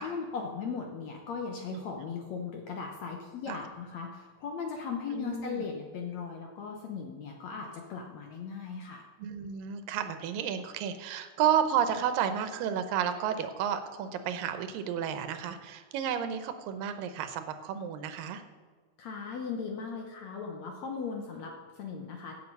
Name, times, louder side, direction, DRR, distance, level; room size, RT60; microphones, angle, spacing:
voice 1, 0.0-9.0 19.0-22.3, left 5 dB, 65° left, 2 dB, 1.9 m, -38 dB
voice 2, 5.1-5.6 9.2-18.4, right 8 dB, 85° right, 9 dB, 2.6 m, -31 dB
15.5 x 6.6 x 5.4 m, 1.5 s
omnidirectional pair, 3.9 m